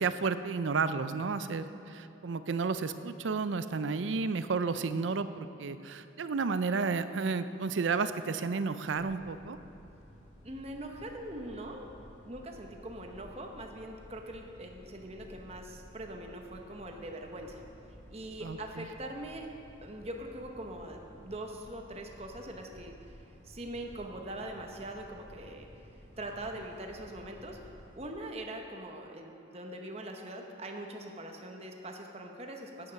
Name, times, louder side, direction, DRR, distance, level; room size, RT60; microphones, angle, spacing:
voice 1, 0.0-1.7 1.9-9.6 18.4-18.9, right 4 dB, 80° right, 12 dB, 0.5 m, -32 dB
sound 1, 9.0-28.1, equal, 40° left, 2.1 m, -54 dB
voice 2, 10.4-11.9 12.2-17.6 18.1-19.5 19.8-23.2 23.4-25.7 26.2-32.9, right 1 dB, 35° right, 2 dB, 0.9 m, -42 dB
9.7 x 9.1 x 5.8 m, 2.8 s
head